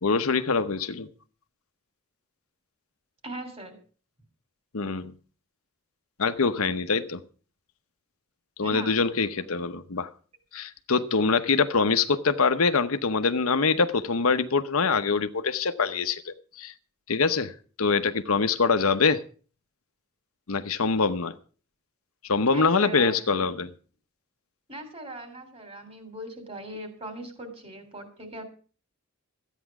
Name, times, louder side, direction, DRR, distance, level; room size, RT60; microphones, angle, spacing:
voice 1, 0.0-1.1 4.7-5.1 6.2-7.2 8.6-10.1 10.5-16.7 17.1-17.5 17.8-19.2 20.5-21.4 22.3-23.7, left 4 dB, 75° left, 0.9 m, -24 dB
voice 2, 3.2-3.8 8.6-8.9 22.5-23.5 24.7-28.4, right 1 dB, 30° right, 3.4 m, -40 dB
13.5 x 9.2 x 6.0 m
head